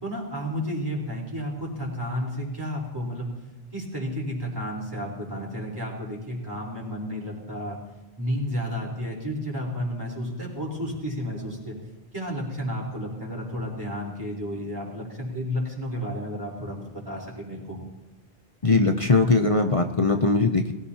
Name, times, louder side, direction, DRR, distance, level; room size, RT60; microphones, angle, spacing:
voice 1, 0.0-3.3 3.7-7.8 8.2-11.7 12.1-17.8, equal, 20° right, -3 dB, 4.3 m, -32 dB
voice 2, 18.6-20.7, left 3 dB, 35° left, 5 dB, 0.8 m, -20 dB
21.5 x 14.5 x 2.9 m, 1.2 s
omnidirectional pair, 1.0 m